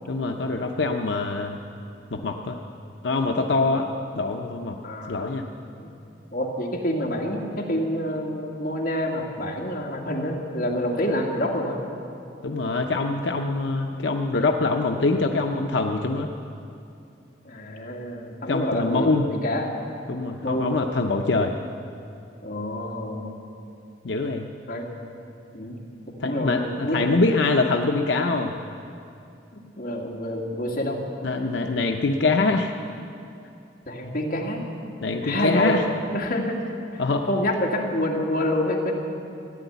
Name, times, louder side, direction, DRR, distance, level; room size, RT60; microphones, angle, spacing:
voice 1, 0.1-1.6 2.1-2.6 3.0-3.8 4.2-4.8 5.1-5.5 12.4-16.3 18.5-19.3 20.1-21.5 24.0-24.5 26.2-28.5 31.2-32.7 35.0-35.8 37.0-37.2, left 3 dB, 90° left, 3 dB, 0.7 m, -24 dB
voice 2, 4.8-5.5 5.8-5.9 6.3-11.8 14.4-14.5 17.4-19.7 20.4-20.8 22.4-23.4 24.7-24.9 25.5-25.8 26.2-27.1 29.5-31.0 33.9-34.6 35.2-35.7 36.1-36.6 37.3-38.9, left 1 dB, 50° left, -2 dB, 2.2 m, -27 dB
15.5 x 10.0 x 8.1 m, 2.6 s
head